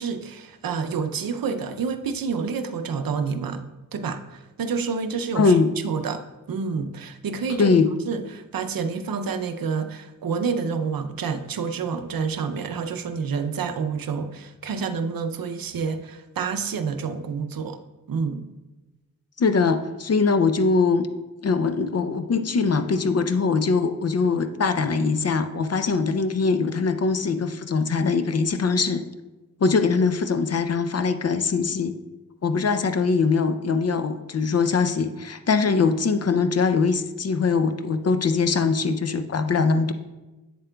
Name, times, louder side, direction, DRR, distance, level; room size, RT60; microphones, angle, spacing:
voice 1, 0.0-3.7 3.9-5.5 5.8-7.8 8.1-17.8 18.1-18.5, right 5 dB, 80° right, 8 dB, 0.6 m, -28 dB
voice 2, 5.4-5.7 7.6-7.9 19.4-21.1 21.4-29.0 29.6-31.9 32.4-39.9, left 4 dB, 45° left, 9 dB, 0.4 m, -22 dB
8.3 x 7.3 x 2.2 m, 1.1 s
wide cardioid pair, 95°, 34 cm